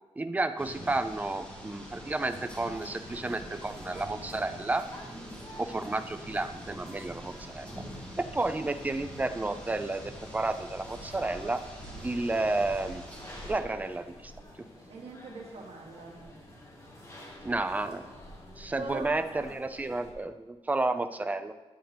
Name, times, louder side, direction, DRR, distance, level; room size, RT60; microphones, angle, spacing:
voice 1, 0.2-4.9 5.6-7.8 8.3-11.6 12.0-13.0 13.5-14.3 17.4-18.1 18.6-21.5, right 2 dB, 15° right, 9 dB, 0.5 m, -31 dB
sound 1, 0.6-13.5, equal, 10° left, 2.9 m, -45 dB
sound 2, 2.4-20.1, left 1 dB, 30° left, 1.9 m, -50 dB
voice 2, 14.9-16.3 18.8-19.5, right 3 dB, 85° right, 0 dB, 1.8 m, -42 dB
10.5 x 7.4 x 3.4 m, 1.2 s
wide cardioid pair, 125°, 10 cm